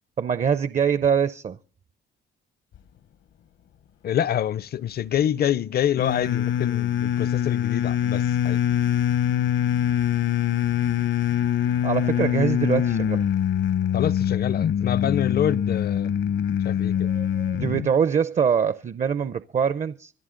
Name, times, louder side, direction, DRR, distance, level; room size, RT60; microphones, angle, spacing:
voice 1, 0.2-1.6 11.8-13.2 17.0-20.1, right 7 dB, 35° right, 0.6 m, -24 dB
voice 2, 4.0-8.6 13.9-16.1 16.6-17.1, left 10 dB, 50° left, 0.6 m, -26 dB
sound 1, 6.0-17.9, left 10 dB, 70° left, 0.9 m, -24 dB
25.0 x 10.5 x 3.8 m
cardioid pair, 90°, 20 cm